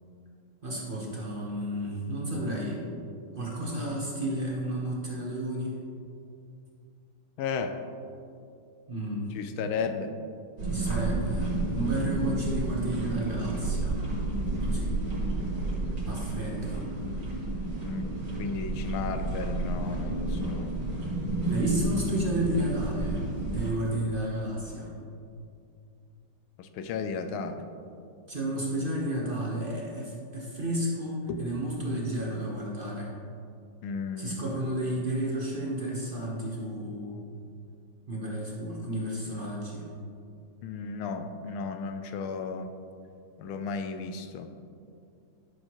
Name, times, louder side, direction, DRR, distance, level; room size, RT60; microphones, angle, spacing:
voice 1, 0.6-3.0 3.3-5.8 8.9-9.3 10.7-14.0 14.6-14.9 16.0-16.8 21.5-23.2 23.5-24.9 28.3-33.1 34.2-37.2 38.1-39.9, right 1 dB, 30° right, -3 dB, 1.1 m, -32 dB
voice 2, 7.4-7.8 9.3-10.1 17.8-20.8 26.6-27.7 31.3-31.4 33.8-34.4 40.6-42.7 43.4-44.5, left 5 dB, 80° left, 7 dB, 1.4 m, -34 dB
sound 1, 10.6-23.7, right 2 dB, 70° right, 3.1 m, -31 dB
12.0 x 6.5 x 3.1 m, 2.5 s
omnidirectional pair, 2.3 m